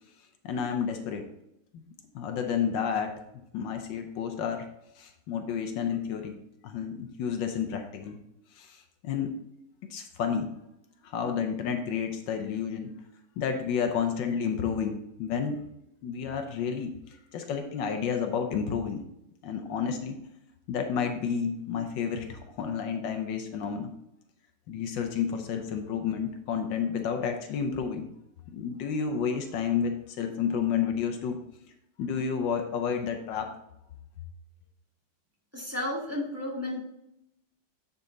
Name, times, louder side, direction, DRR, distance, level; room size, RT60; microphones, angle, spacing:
voice 1, 0.4-1.2 2.1-3.1 3.5-4.7 5.0-6.4 6.6-8.2 8.5-9.3 9.9-10.5 11.0-12.9 13.4-15.6 16.0-19.0 19.4-20.2 20.7-23.9 24.7-28.1 28.5-31.4 32.0-33.5, left 7 dB, 80° left, 6 dB, 1.4 m, -30 dB
voice 2, 35.5-36.8, left 1 dB, 10° right, -5 dB, 1.8 m, -32 dB
9.2 x 4.2 x 3.8 m, 0.81 s
omnidirectional pair, 2.0 m